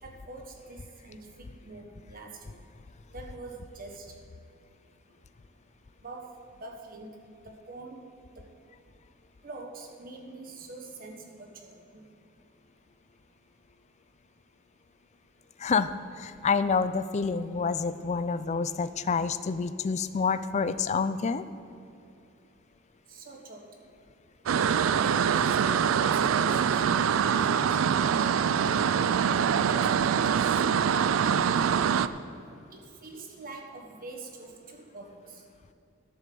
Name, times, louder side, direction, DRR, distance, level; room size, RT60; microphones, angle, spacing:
voice 1, 0.0-2.4 3.1-4.1 6.0-6.3 6.6-7.1 7.4-8.1 8.4-8.5 9.4-12.0 23.1-23.6 24.7-27.8 28.1-28.4 28.7-29.2 29.7-31.2 32.7-35.4, right 3 dB, 45° right, 2 dB, 1.4 m, -45 dB
voice 2, 15.6-21.4, left 5 dB, 35° left, 13 dB, 0.4 m, -28 dB
sound 1, 24.5-32.1, right 7 dB, 70° right, 0.4 m, -24 dB
11.5 x 7.3 x 6.8 m, 2.7 s
head